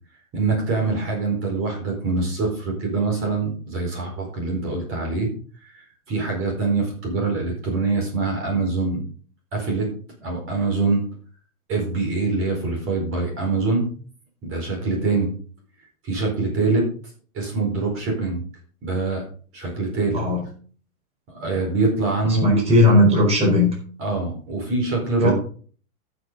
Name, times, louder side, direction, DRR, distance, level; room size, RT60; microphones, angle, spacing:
voice 1, 0.3-5.3 5.6-5.8 6.1-9.0 9.5-9.9 10.2-11.0 11.7-13.9 14.4-15.3 16.0-16.9 17.3-18.4 18.8-19.2 19.5-20.2 21.3-22.6 24.0-25.3, right 3 dB, 30° right, 0 dB, 4.5 m, -24 dB
voice 2, 22.3-23.7 25.2-25.3, left 1 dB, 15° right, -2 dB, 4.4 m, -17 dB
14.0 x 6.9 x 4.0 m, 0.43 s
hypercardioid pair, 125°, 45 cm